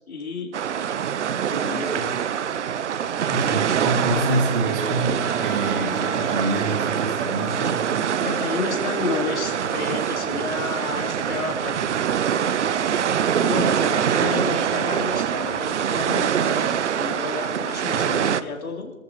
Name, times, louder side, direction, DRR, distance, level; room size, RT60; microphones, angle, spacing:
voice 1, 0.1-0.6 1.5-2.2 8.2-12.0 13.4-18.9, left 3 dB, 85° left, 0 dB, 4.1 m, -31 dB
sound 1, 0.5-18.4, right 8 dB, 55° right, 0.7 m, -24 dB
voice 2, 3.3-7.8, right 2 dB, 40° right, 1 dB, 3.2 m, -26 dB
sound 2, 4.6-14.8, right 1 dB, 5° right, 2.1 m, -40 dB
25.5 x 14.0 x 3.2 m, 1.2 s
hypercardioid pair, 165°, 41 cm